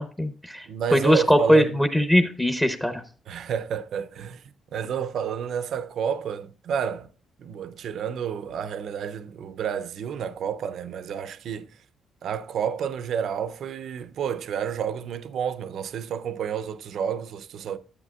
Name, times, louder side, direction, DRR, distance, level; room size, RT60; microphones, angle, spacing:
voice 1, 0.0-0.6 0.9-3.0, equal, 10° left, 0.8 m, -21 dB
voice 2, 0.7-1.8 3.3-4.4 4.7-7.1 7.4-11.7 12.2-17.8, right 8 dB, 70° right, 0.5 m, -30 dB
11.0 x 8.3 x 2.4 m
cardioid pair, 90°, 0 cm